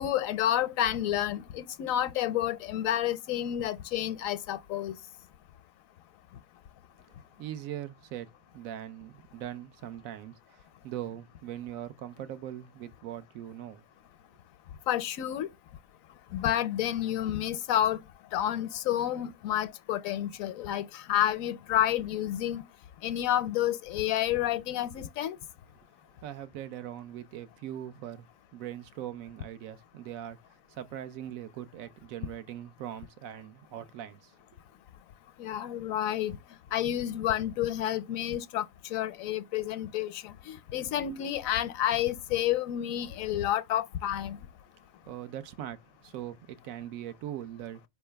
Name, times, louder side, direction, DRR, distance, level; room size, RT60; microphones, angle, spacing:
voice 1, 0.0-5.0 14.9-15.5 16.3-18.0 18.3-22.6 23.0-25.4 35.4-36.4 36.7-44.4, left 11 dB, 80° left, 1.0 m, -30 dB
voice 2, 7.1-8.3 8.5-13.8 26.2-30.4 30.7-34.3 45.0-47.8, right 11 dB, 85° right, 1.0 m, -41 dB
4.6 x 2.9 x 3.3 m
omnidirectional pair, 1.4 m